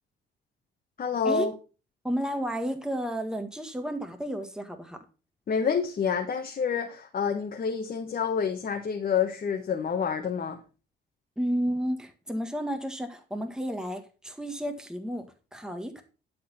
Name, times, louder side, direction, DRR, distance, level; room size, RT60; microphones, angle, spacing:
voice 1, 1.0-1.5 5.5-10.6, left 6 dB, 45° left, 1.3 m, -28 dB
voice 2, 2.0-5.0 11.4-15.3 15.5-16.0, equal, 5° right, 1.6 m, -32 dB
11.5 x 4.2 x 5.6 m
cardioid pair, 90°, 20 cm